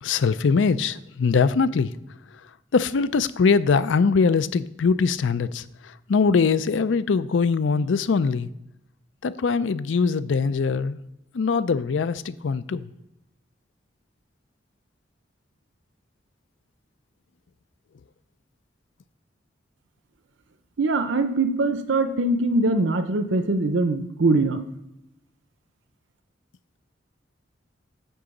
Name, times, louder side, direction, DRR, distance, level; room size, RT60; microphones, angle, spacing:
voice 1, 0.0-1.9 2.7-8.5 9.2-11.0 11.3-12.9, left 5 dB, 75° left, 0.5 m, -22 dB
voice 2, 20.8-24.6, right 2 dB, 80° right, 0.7 m, -22 dB
10.0 x 3.8 x 7.1 m
head